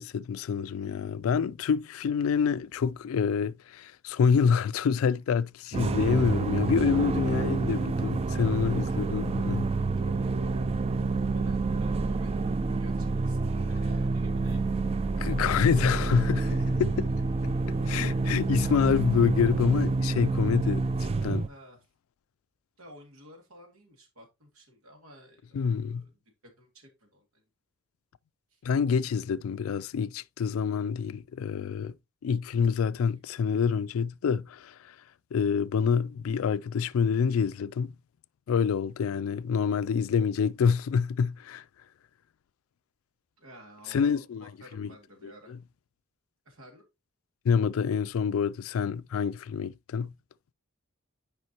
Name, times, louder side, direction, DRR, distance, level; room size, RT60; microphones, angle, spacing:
voice 1, 0.0-9.7 15.2-17.1 17.7-20.8 21.2-21.5 25.5-26.1 28.6-31.9 32.2-34.9 35.3-37.9 38.5-41.6 43.9-44.5 44.7-44.9 45.2-45.6 47.4-50.1, left 6 dB, 70° left, 0.3 m, -27 dB
sound 1, 5.7-21.5, right 3 dB, 30° right, 0.3 m, -28 dB
voice 2, 11.0-14.7 21.4-21.8 22.8-26.1 26.4-27.4 28.5-28.6 33.0-33.1 39.8-40.1 43.4-45.5 46.5-46.8, equal, 85° right, 2.2 m, -53 dB
9.4 x 5.1 x 2.8 m
head